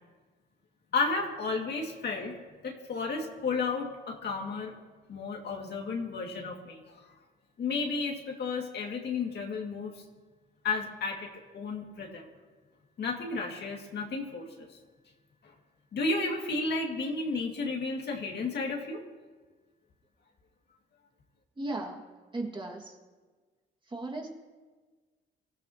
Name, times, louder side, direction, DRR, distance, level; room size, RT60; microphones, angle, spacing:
voice 1, 0.9-2.4 2.6-4.7 5.1-6.8 7.6-9.9 10.6-12.3 13.0-14.7 15.9-19.0, left 3 dB, 55° left, 1 dB, 2.2 m, -32 dB
voice 2, 21.6-22.0 22.3-23.0 23.9-24.3, right 2 dB, 25° right, 0 dB, 2.0 m, -36 dB
24.0 x 14.5 x 2.9 m, 1.4 s
cardioid pair, 90°, 20 cm